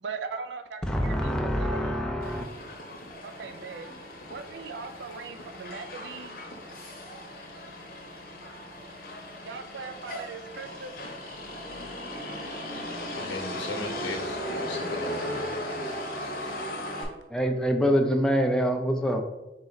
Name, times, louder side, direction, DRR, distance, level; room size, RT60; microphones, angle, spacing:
voice 1, 0.0-2.0 3.2-3.9 4.3-6.4 9.4-10.9 17.1-17.3, right 5 dB, 75° right, 8 dB, 0.4 m, -39 dB
voice 2, 0.8-2.5 17.3-19.2, equal, 5° left, 3 dB, 0.4 m, -25 dB
Motor vehicle (road), 2.2-17.0, left 1 dB, 50° left, 0.8 m, -37 dB
voice 3, 13.1-15.4, left 2 dB, 85° left, 3 dB, 0.8 m, -37 dB
4.0 x 3.1 x 3.9 m, 0.98 s
head